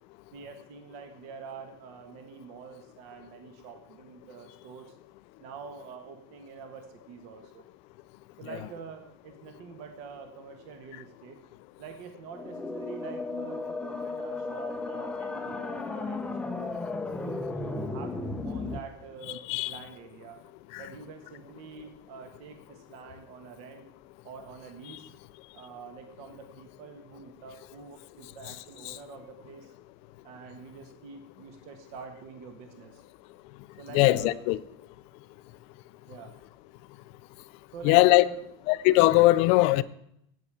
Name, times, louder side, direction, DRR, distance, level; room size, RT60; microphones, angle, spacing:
voice 1, 0.3-4.9 5.4-7.6 8.4-11.4 11.8-16.7 17.2-20.4 20.8-23.8 24.2-25.1 25.5-29.7 30.2-33.0 33.8-34.4 36.1-36.3 37.7-38.4, right 6 dB, 50° right, 1.5 m, -46 dB
sound 1, 12.3-18.8, left 3 dB, 5° left, 0.7 m, -34 dB
voice 2, 33.9-34.6 37.8-38.2 38.7-39.8, left 19 dB, 50° left, 0.5 m, -20 dB
8.5 x 8.3 x 8.7 m
supercardioid pair, 150°, 14 cm